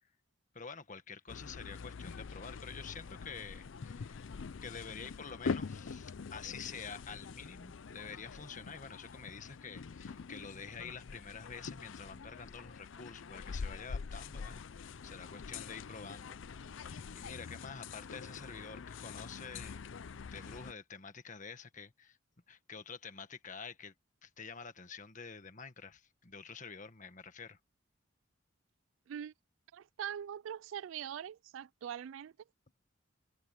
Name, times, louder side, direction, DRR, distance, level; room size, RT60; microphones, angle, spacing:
voice 1, 0.5-4.3 4.6-16.4 16.6-19.8 20.3-22.2 22.5-23.9 24.2-27.6, left 5 dB, 40° left, 1.5 m, -48 dB
sound 1, 1.3-20.7, left 5 dB, 70° left, 0.5 m, -44 dB
voice 2, 29.7-32.3, right 9 dB, 75° right, 0.3 m, -42 dB
head